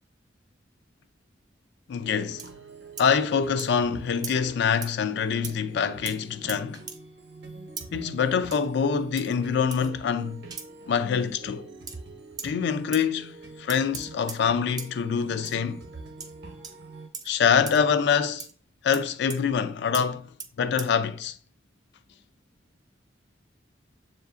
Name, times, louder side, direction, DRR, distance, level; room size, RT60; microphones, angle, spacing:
voice 1, 1.9-2.4 3.0-6.8 7.9-10.5 10.9-11.7 12.4-15.8 17.3-18.5 18.8-20.3 20.6-21.4, left 6 dB, 65° left, 0.3 m, -25 dB
sound 1, 2.0-17.1, right 3 dB, 60° right, 0.7 m, -45 dB
sound 2, 2.4-2.5 3.0-3.1 3.6-3.7 4.2-4.4 4.8-4.9 5.4-5.5 6.1-6.2 6.5-7.0 7.8-7.9 8.5-8.7 9.2-9.3 9.7-9.9 10.5-10.7 11.9-12.0 12.4-12.5 12.9-13.1 13.7-14.4 14.8-14.9 15.4-15.6 16.2-16.3 16.6-16.8 17.1-17.3 17.7-17.8 18.4-18.5 18.9-19.0 19.3-19.4 19.9-20.1 20.4-20.5 20.8-20.9, right 6 dB, 20° right, 0.4 m, -38 dB
7.1 x 2.5 x 2.4 m
head